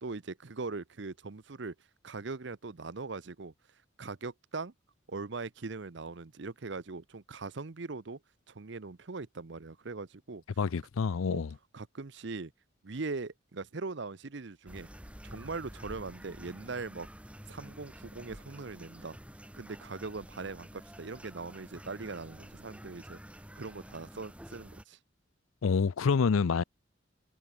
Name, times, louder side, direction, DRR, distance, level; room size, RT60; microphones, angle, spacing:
voice 1, 0.0-1.7 2.0-3.5 4.0-4.7 5.1-8.2 8.5-10.4 11.3-11.4 11.7-12.5 12.8-14.9 15.2-17.1 17.5-19.2 19.5-23.2 23.6-25.0, right 3 dB, 60° right, 0.8 m, -40 dB
voice 2, 10.6-11.5 25.6-26.6, left 5 dB, 85° left, 0.5 m, -27 dB
sound 1, 14.7-24.8, equal, 5° right, 5.9 m, -49 dB
head